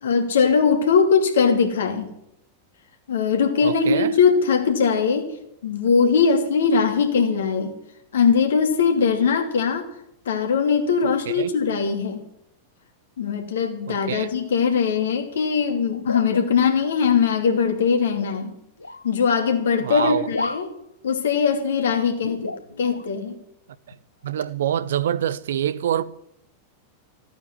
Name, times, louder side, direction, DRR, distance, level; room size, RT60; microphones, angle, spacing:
voice 1, 0.0-2.1 3.1-5.3 5.6-7.7 8.1-9.9 10.3-12.2 13.2-18.5 19.0-20.7 21.0-23.4, left 6 dB, 65° left, 2.6 m, -21 dB
voice 2, 3.6-4.2 11.0-11.5 13.9-14.3 19.8-20.3 24.2-26.0, right 10 dB, 60° right, 0.7 m, -26 dB
sound 1, 15.9-17.0 17.4-18.5 18.8-19.1 19.9-20.7 21.1-21.2 22.2-23.1 23.9-24.0 24.9-25.1, left 2 dB, 85° left, 0.6 m, -32 dB
14.5 x 8.7 x 9.8 m
figure-of-eight pair, 90°, 0 cm